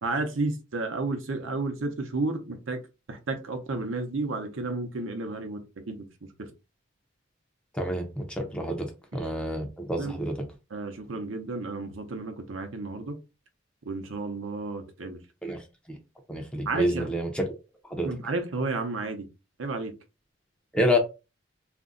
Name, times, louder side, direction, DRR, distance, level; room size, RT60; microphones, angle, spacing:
voice 1, 0.0-2.8 3.1-6.5 9.1-9.2 10.0-10.2 10.7-13.2 13.9-15.2 16.7-17.1 18.0-19.3 19.6-19.9, right 3 dB, 75° right, 0.7 m, -32 dB
voice 2, 7.7-8.9 9.1-10.3 15.4-15.6 16.3-17.4 17.9-18.1 20.7-21.0, equal, 5° left, 0.6 m, -28 dB
2.5 x 2.1 x 3.7 m
head